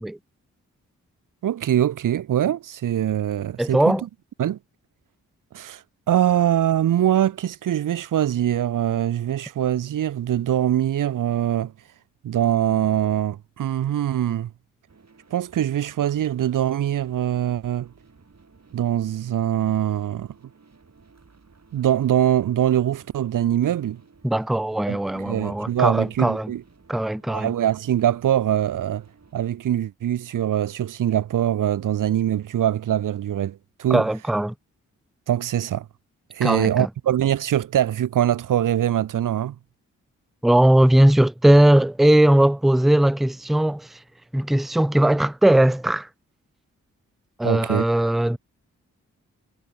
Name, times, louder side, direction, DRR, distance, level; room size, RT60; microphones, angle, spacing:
voice 1, 1.4-4.0 4.4-4.6 5.5-5.8 6.1-11.7 12.2-14.5 15.3-17.9 18.7-20.3 21.7-24.0 24.9-26.6 27.3-29.0 29.3-34.0 35.3-35.8 36.3-39.5 47.4-47.8, right 11 dB, 70° right, 0.7 m, -23 dB
voice 2, 3.6-4.0 24.2-26.5 26.9-27.5 33.9-34.5 36.4-36.9 40.4-44.0 44.3-46.1 47.4-48.4, right 1 dB, ahead, 0.6 m, -19 dB
sound 1, 14.9-29.4, right 4 dB, 50° right, 7.9 m, -55 dB
supercardioid pair, 40°, 34 cm